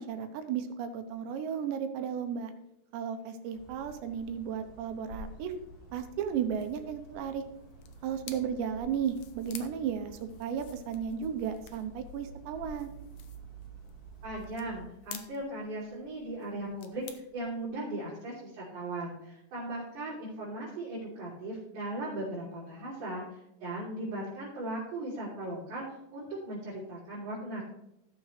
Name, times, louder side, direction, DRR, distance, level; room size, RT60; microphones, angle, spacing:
voice 1, 0.0-2.5 2.9-5.5 5.9-7.4 8.0-12.9, right 8 dB, 85° right, 8 dB, 3.1 m, -34 dB
sound 1, 3.5-14.8, right 2 dB, 35° left, 1.6 m, -50 dB
sound 2, 6.6-17.7, left 9 dB, 80° left, 1.9 m, -52 dB
voice 2, 14.2-25.8 26.1-27.7, right 1 dB, 50° right, -9 dB, 4.3 m, -38 dB
15.0 x 6.8 x 3.3 m, 0.88 s
omnidirectional pair, 5.0 m